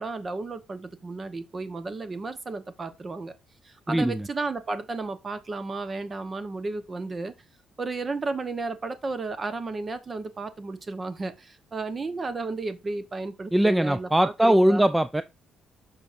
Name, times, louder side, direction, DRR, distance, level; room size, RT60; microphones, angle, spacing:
voice 1, 0.0-3.3 3.6-7.3 7.8-14.9, right 3 dB, 35° right, 1.0 m, -33 dB
voice 2, 3.9-4.3 13.5-15.2, right 1 dB, 10° right, 0.3 m, -21 dB
7.1 x 5.8 x 2.6 m
cardioid pair, 90°, 0 cm